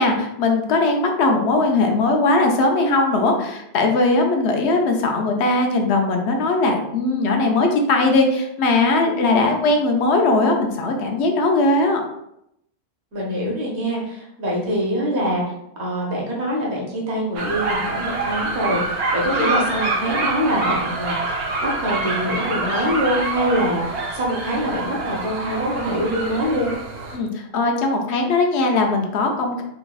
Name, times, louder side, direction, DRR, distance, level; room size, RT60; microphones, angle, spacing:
voice 1, 0.0-12.0 27.1-29.6, left 2 dB, 80° left, 3 dB, 0.9 m, -19 dB
voice 2, 9.1-9.5 13.1-15.4 15.8-26.7, equal, 85° right, -3 dB, 1.3 m, -24 dB
sound 1, 17.4-27.2, right 3 dB, 65° right, 0.9 m, -25 dB
3.4 x 3.0 x 2.3 m, 0.80 s
omnidirectional pair, 1.1 m